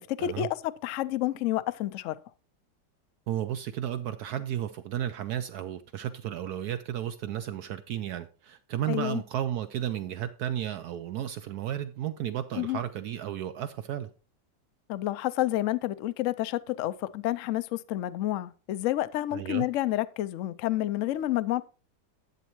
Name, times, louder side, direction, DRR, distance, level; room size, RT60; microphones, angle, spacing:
voice 1, 0.0-2.2 8.9-9.2 12.5-12.8 14.9-21.6, left 14 dB, 85° left, 0.7 m, -29 dB
voice 2, 3.3-14.1 19.3-19.7, right 11 dB, 70° right, 1.0 m, -33 dB
11.0 x 8.3 x 3.0 m
omnidirectional pair, 1.9 m